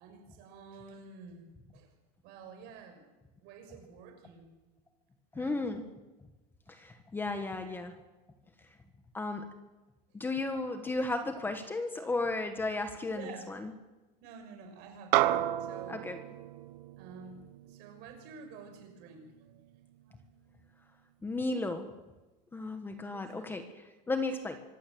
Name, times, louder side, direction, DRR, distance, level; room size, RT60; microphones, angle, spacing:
voice 1, 0.0-1.9 2.2-3.1 3.4-4.5 5.3-5.6 13.1-13.5 14.2-15.3 15.6-16.1 17.0-19.3 23.0-23.5, right 5 dB, 55° right, 4 dB, 5.9 m, -50 dB
voice 2, 5.3-5.9 6.7-7.9 9.1-9.5 10.1-13.7 15.9-16.2 21.2-21.9 22.5-24.6, left 2 dB, 10° left, 7 dB, 1.2 m, -34 dB
sound 1, 15.1-19.8, right 14 dB, 75° right, 1.2 m, -33 dB
25.0 x 16.5 x 7.7 m, 1.1 s
cardioid pair, 170°, 21 cm